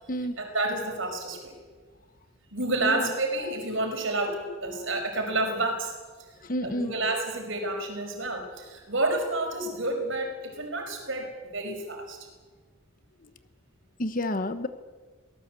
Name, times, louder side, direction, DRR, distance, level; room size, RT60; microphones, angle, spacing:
voice 1, 0.4-1.6 2.5-5.9 6.6-12.2, right 2 dB, 60° right, 4 dB, 5.5 m, -29 dB
voice 2, 6.4-6.9 13.2-13.3 14.0-14.7, left 1 dB, 40° left, 11 dB, 1.1 m, -30 dB
24.0 x 18.5 x 8.2 m, 1.4 s
head